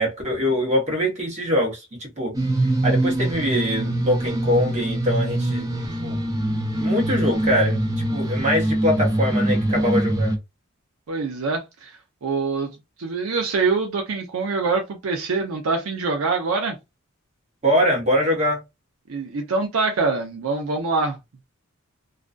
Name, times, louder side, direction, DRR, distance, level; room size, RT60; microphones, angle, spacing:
voice 1, 0.0-2.3 2.8-5.7 6.0-6.2 6.8-10.4 17.6-18.6, equal, 30° right, 1.0 m, -23 dB
sound 1, 2.3-10.4, right 1 dB, 15° right, 0.4 m, -23 dB
voice 2, 11.1-16.8 19.1-21.2, right 4 dB, 70° right, 0.5 m, -25 dB
2.4 x 2.2 x 2.4 m
head